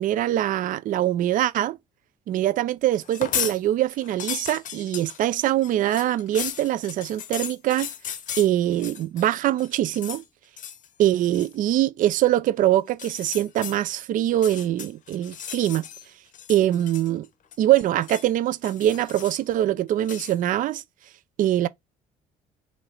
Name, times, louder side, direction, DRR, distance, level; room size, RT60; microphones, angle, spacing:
voice 1, 0.0-1.8 2.3-7.9 8.4-10.2 11.0-15.9 16.5-17.3 17.6-20.8 21.4-21.7, right 13 dB, 55° right, 0.4 m, -23 dB
sound 1, 3.0-3.6 3.9-9.3 9.6-10.2 10.6-10.9 11.2-11.5 12.9-13.8 14.3-16.0 16.3-17.3 17.5-18.3 18.6-19.5 20.0-20.4, left 9 dB, 55° left, 0.7 m, -35 dB
3.0 x 2.7 x 4.2 m
supercardioid pair, 65°, 16 cm